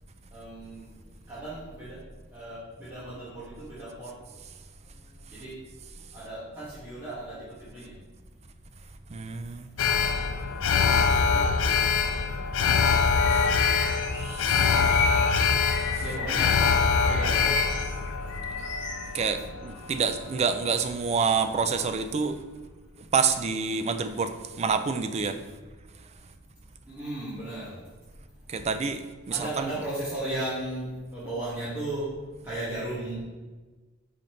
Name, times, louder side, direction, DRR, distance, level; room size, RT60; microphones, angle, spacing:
voice 1, 0.3-0.9 1.3-2.0 2.3-4.1 5.3-5.5 6.1-7.3 7.7-7.9 10.8-11.9 12.2-12.3 13.4-13.8 16.0-16.5 17.0-17.5 26.9-27.7 29.3-30.8 31.1-32.1 32.4-33.2, right 1 dB, 10° right, -13 dB, 1.8 m, -36 dB
voice 2, 9.1-9.7 13.3-13.5 14.2-15.0 15.7-16.0 19.1-22.4 23.0-25.4 28.5-29.7, right 5 dB, 30° right, 9 dB, 0.4 m, -28 dB
Alarm, 9.8-20.0 20.4-20.5, left 5 dB, 85° left, 0.4 m, -24 dB
Bird vocalization bird call bird song, 13.2-16.5 16.9-19.1, left 3 dB, 60° left, 1.6 m, -34 dB
8.3 x 4.0 x 3.2 m, 1.3 s
head